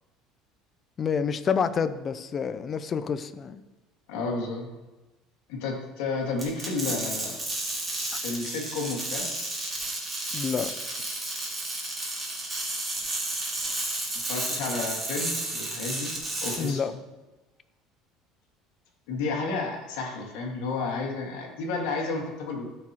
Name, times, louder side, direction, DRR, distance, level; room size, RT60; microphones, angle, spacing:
voice 1, 1.0-3.6 10.3-10.7 16.6-16.9, left 6 dB, 25° left, 12 dB, 0.4 m, -28 dB
voice 2, 4.1-4.7 5.5-7.4 8.2-9.3 14.1-16.1 16.4-16.8 19.1-22.7, left 3 dB, 85° left, 1 dB, 1.7 m, -31 dB
sound 1, 6.4-16.7, right 2 dB, 15° right, 1.9 m, -32 dB
13.0 x 4.8 x 2.9 m, 1.1 s
cardioid pair, 160°, 0 cm